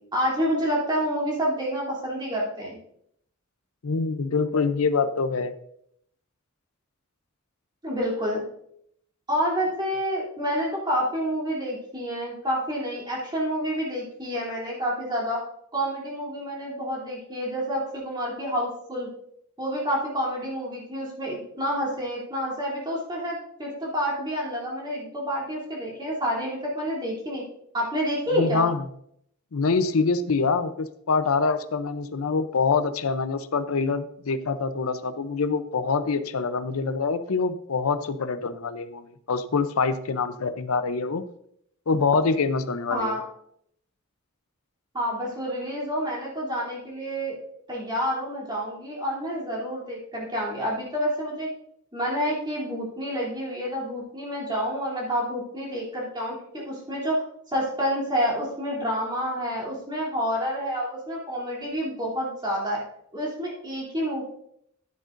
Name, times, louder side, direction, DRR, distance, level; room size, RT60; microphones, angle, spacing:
voice 1, 0.1-2.8 7.8-8.4 9.3-15.4 15.7-19.1 19.6-27.4 27.7-28.7 42.9-43.2 44.9-47.3 47.7-51.5 51.9-62.8 63.1-64.2, equal, 20° right, -5 dB, 3.1 m, -28 dB
voice 2, 3.8-5.5 28.3-28.8 29.5-41.2 41.9-43.2, left 4 dB, 90° left, 12 dB, 0.6 m, -25 dB
10.5 x 9.9 x 2.6 m, 0.72 s
head